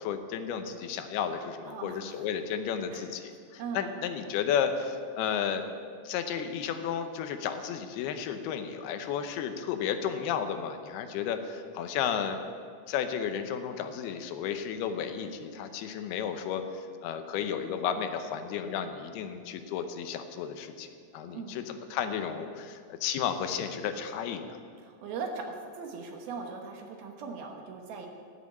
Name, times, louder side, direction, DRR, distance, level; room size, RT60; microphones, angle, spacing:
voice 1, 0.0-5.7 6.0-12.5 12.9-20.9 21.1-24.4, left 8 dB, 80° left, 8 dB, 2.7 m, -33 dB
voice 2, 1.7-2.1 2.9-3.1 3.6-3.9 21.2-21.6 24.8-28.1, right 5 dB, 75° right, 2 dB, 3.0 m, -39 dB
15.0 x 7.4 x 8.5 m, 2.2 s
omnidirectional pair, 4.6 m